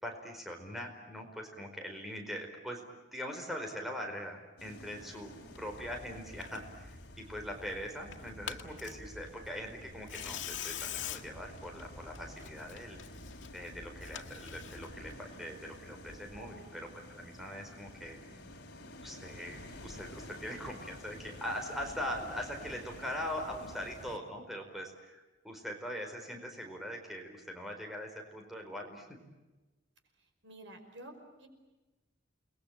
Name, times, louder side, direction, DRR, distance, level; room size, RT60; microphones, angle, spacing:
voice 1, 0.0-13.0 13.5-18.2 19.0-29.2, equal, ahead, 2 dB, 4.7 m, -42 dB
sound 1, 4.6-24.2, left 1 dB, 60° left, 3.5 m, -51 dB
Tearing, 5.5-15.1, left 7 dB, 90° left, 2.0 m, -46 dB
voice 2, 16.1-16.7 18.3-18.6 23.6-23.7 30.4-31.1 31.4-31.5, right 1 dB, 75° right, 5 dB, 5.5 m, -52 dB
30.0 x 21.5 x 8.9 m, 1.1 s
head